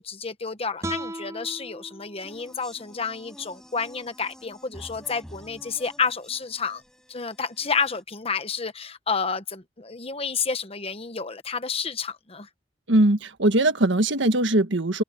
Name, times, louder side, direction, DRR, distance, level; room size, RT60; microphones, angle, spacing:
voice 1, 0.0-6.8 7.1-12.5, left 5 dB, 30° left, 1.1 m, -30 dB
sound 1, 0.8-4.0, right 1 dB, 15° right, 4.2 m, -39 dB
sound 2, 2.2-8.0, equal, 5° left, 6.6 m, -49 dB
voice 2, 12.9-15.0, right 1 dB, 70° right, 1.5 m, -20 dB
head